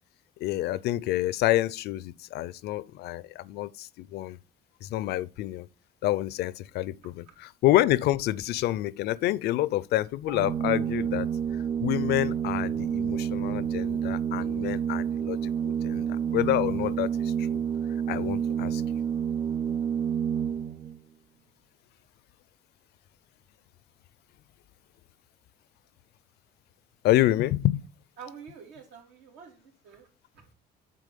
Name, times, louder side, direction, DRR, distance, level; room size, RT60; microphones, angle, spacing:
voice 1, 0.4-4.4 4.8-5.7 6.0-11.3 11.8-17.6 18.1-18.8 27.0-27.8, left 15 dB, 75° left, 0.5 m, -28 dB
Organ, 10.3-21.0, right 8 dB, 25° right, 0.3 m, -29 dB
voice 2, 28.2-30.1 30.3-30.5, right 7 dB, 90° right, 2.8 m, -47 dB
8.4 x 3.9 x 6.7 m
cardioid pair, 110°, 17 cm